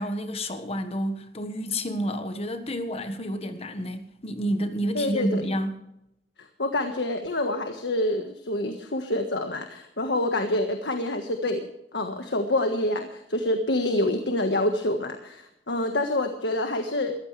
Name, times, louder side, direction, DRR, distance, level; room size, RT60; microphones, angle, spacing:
voice 1, 0.0-5.8, equal, 35° left, 1.5 m, -29 dB
voice 2, 4.9-5.4 6.6-11.6 11.9-17.2, left 1 dB, 75° left, 1.5 m, -27 dB
21.0 x 15.0 x 3.4 m
head